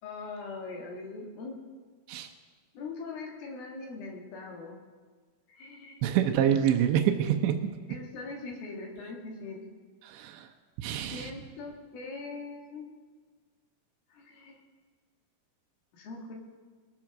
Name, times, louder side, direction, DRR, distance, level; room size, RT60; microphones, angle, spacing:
voice 1, 0.0-1.5 2.7-4.8 5.5-6.0 7.9-9.6 11.1-12.8 14.1-14.6 15.9-16.3, left 3 dB, 60° left, 1 dB, 3.0 m, -41 dB
voice 2, 6.0-7.5 10.0-10.5 10.8-11.3, right 10 dB, 80° right, 4 dB, 2.9 m, -26 dB
20.5 x 7.6 x 5.9 m, 1.5 s
omnidirectional pair, 5.6 m